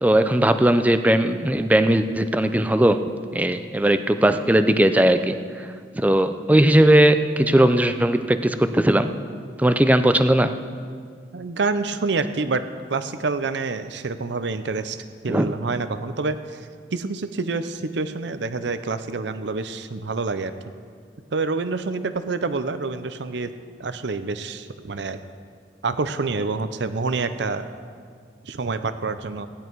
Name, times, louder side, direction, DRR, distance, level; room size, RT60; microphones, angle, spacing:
voice 1, 0.0-3.0 3.3-5.7 5.9-9.1 9.6-10.5 15.3-15.5, right 1 dB, 10° right, 9 dB, 0.4 m, -18 dB
voice 2, 11.3-12.6 12.9-16.6 16.9-20.5 21.3-23.5 23.8-25.2 25.8-27.7 28.4-29.5, right 3 dB, 70° right, 11 dB, 0.6 m, -27 dB
16.0 x 10.5 x 4.6 m, 2.1 s
head